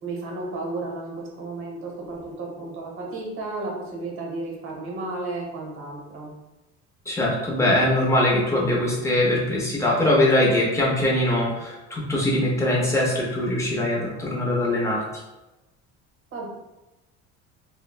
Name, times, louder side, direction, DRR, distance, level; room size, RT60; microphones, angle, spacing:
voice 1, 0.0-6.3 16.3-16.5, right 2 dB, 40° right, -1 dB, 0.8 m, -33 dB
voice 2, 7.1-15.0, left 1 dB, 10° left, -4 dB, 0.6 m, -22 dB
3.0 x 2.1 x 2.3 m, 1.0 s
cardioid pair, 135°, 31 cm